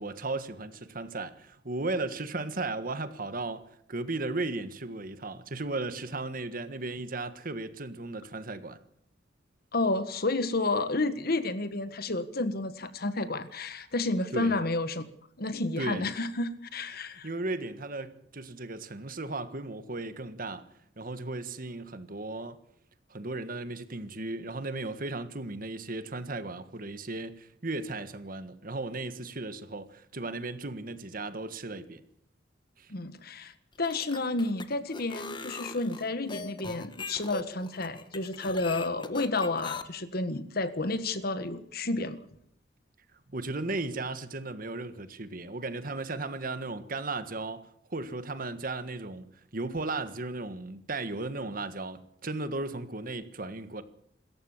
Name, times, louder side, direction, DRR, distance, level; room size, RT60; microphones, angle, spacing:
voice 1, 0.0-3.6 3.9-8.8 14.3-14.6 15.8-16.1 17.1-20.7 21.0-22.6 23.1-32.0 32.8-32.9 43.3-49.2 49.5-53.8, right 2 dB, 50° right, 1.5 m, -36 dB
voice 2, 9.7-15.0 15.4-17.3 32.9-33.5 33.8-42.2, left 2 dB, 55° left, 1.6 m, -31 dB
sound 1, 33.7-39.8, left 4 dB, 25° left, 1.4 m, -41 dB
27.0 x 14.0 x 7.3 m
head